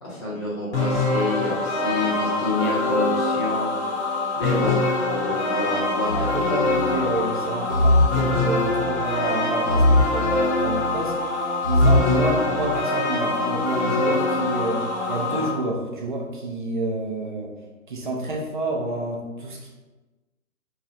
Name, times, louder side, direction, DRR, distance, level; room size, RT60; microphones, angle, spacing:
voice 1, 0.0-3.7 4.3-4.8 5.1-6.6, left 2 dB, 20° left, -8 dB, 1.1 m, -28 dB
sound 1, 0.7-15.5, left 3 dB, 55° left, 1.0 m, -24 dB
voice 2, 6.1-11.2 11.6-17.5 17.9-19.7, right 2 dB, 35° right, -1 dB, 0.6 m, -29 dB
sound 2, 6.1-7.0 7.7-9.0 9.7-11.0 11.6-12.8, left 1 dB, 80° right, 1.3 m, -22 dB
3.0 x 2.5 x 4.3 m, 1.2 s
figure-of-eight pair, 145°, 43 cm